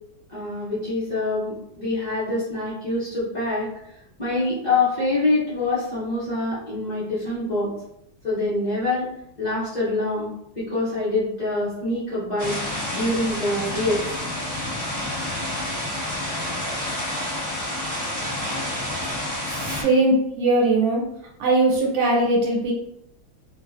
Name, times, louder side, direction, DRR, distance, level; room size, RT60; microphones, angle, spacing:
voice 1, 0.3-3.7 4.2-7.7 8.2-9.1 9.4-10.3 10.6-12.6 12.9-14.0, left 2 dB, 80° left, -10 dB, 0.4 m, -25 dB
sound 1, 12.4-19.8, left 1 dB, 15° right, 0.6 m, -29 dB
voice 2, 19.8-21.0 21.4-22.7, right 2 dB, 80° right, -2 dB, 1.5 m, -19 dB
3.2 x 2.1 x 2.5 m, 0.78 s
omnidirectional pair, 2.1 m